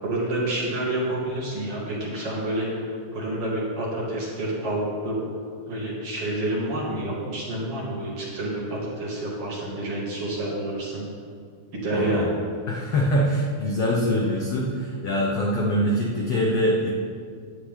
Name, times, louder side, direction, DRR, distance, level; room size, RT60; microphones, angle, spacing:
voice 1, 0.0-5.2 5.7-11.0 11.7-12.3, right 1 dB, 45° right, -5 dB, 2.8 m, -28 dB
voice 2, 11.9-12.3 12.7-16.9, equal, 70° left, -2 dB, 1.5 m, -24 dB
15.5 x 10.0 x 3.8 m, 2.1 s
omnidirectional pair, 4.3 m